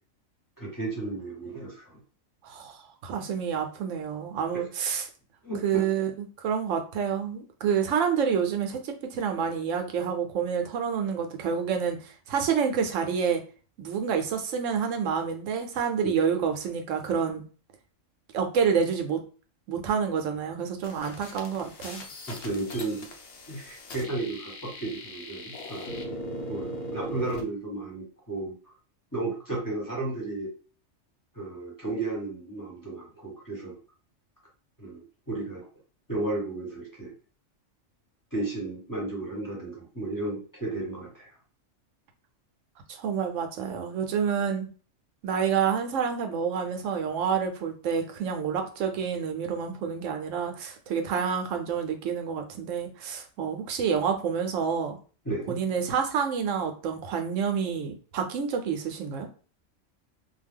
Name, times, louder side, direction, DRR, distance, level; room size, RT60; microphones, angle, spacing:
voice 1, 0.6-2.0 5.4-5.8 16.0-16.1 22.3-23.1 23.5-26.1 26.5-28.5 29.1-30.5 31.3-33.8 34.8-35.7 36.1-37.1 38.3-41.3 55.2-55.6, right 2 dB, 15° left, -4 dB, 0.9 m, -33 dB
voice 2, 2.4-5.1 5.6-13.4 13.8-17.4 18.3-19.2 19.7-22.0 43.0-44.7 45.2-55.0 55.5-59.3, right 7 dB, 80° right, 5 dB, 0.9 m, -28 dB
sound 1, 20.8-27.4, left 1 dB, 65° left, 0.9 m, -39 dB
2.4 x 2.2 x 3.4 m, 0.38 s
omnidirectional pair, 1.3 m